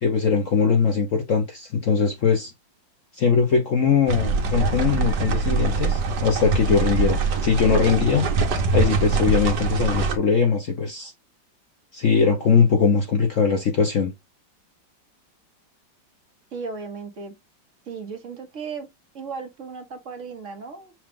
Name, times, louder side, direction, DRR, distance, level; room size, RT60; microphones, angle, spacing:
voice 1, 0.0-2.5 3.1-8.2 8.7-11.1 11.9-14.1, left 5 dB, 55° left, 0.9 m, -21 dB
sound 1, 4.1-10.2, right 4 dB, 65° right, 1.5 m, -23 dB
voice 2, 16.5-17.3 17.9-18.9 19.1-20.9, right 5 dB, 50° right, 1.2 m, -35 dB
5.9 x 2.3 x 3.6 m
omnidirectional pair, 2.1 m